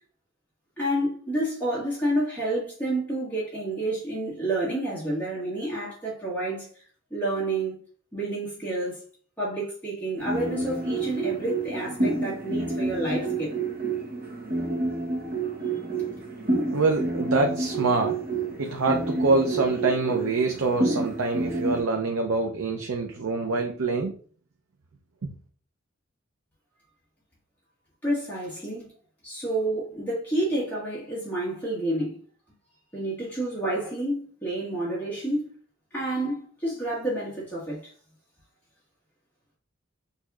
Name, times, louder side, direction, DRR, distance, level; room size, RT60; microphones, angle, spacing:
voice 1, 0.8-6.7 7.1-7.8 8.1-9.0 9.4-13.6 28.0-28.9 29.2-32.1 32.9-35.5 35.9-37.9, right 1 dB, 10° left, 1.7 m, -29 dB
sound 1, 10.2-21.8, right 2 dB, 45° right, 0.9 m, -29 dB
voice 2, 16.7-18.2 18.6-24.1, right 3 dB, 85° right, 0.6 m, -25 dB
6.4 x 2.7 x 2.4 m
head